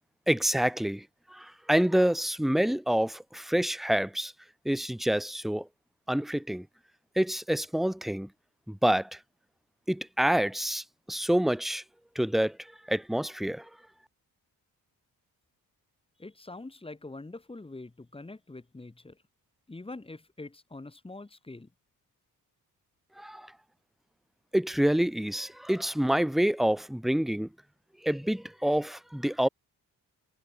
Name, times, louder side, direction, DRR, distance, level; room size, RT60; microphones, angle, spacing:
voice 1, 0.3-4.3 4.6-5.7 6.1-6.7 7.2-8.3 8.7-9.2 9.9-11.8 12.2-12.6 12.9-13.7 23.2-23.5 24.5-27.5 28.0-29.5, equal, ahead, 0.5 m, -27 dB
voice 2, 16.2-19.2 19.7-21.7, left 2 dB, 15° left, 2.8 m, -44 dB
wide cardioid pair, 140°, 38 cm